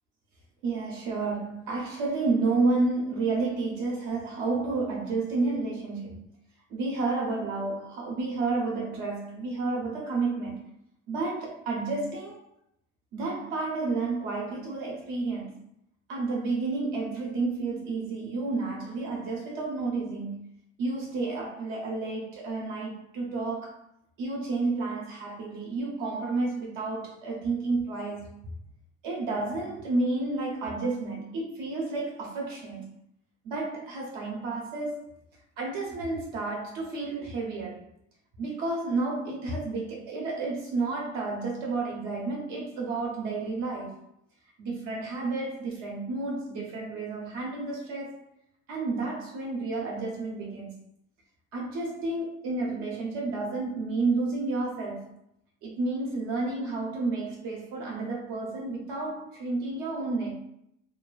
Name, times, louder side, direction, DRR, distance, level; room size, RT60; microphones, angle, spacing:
voice 1, 0.6-6.3 6.7-10.7 11.1-12.4 13.1-15.6 16.1-20.5 20.8-23.8 24.2-28.3 29.0-32.9 33.4-35.2 35.6-37.9 38.4-44.0 44.6-48.3 48.7-50.7 51.5-55.2 55.6-60.4, right 3 dB, 55° right, 0.7 m, -31 dB
2.6 x 2.4 x 2.3 m
cardioid pair, 160°, 36 cm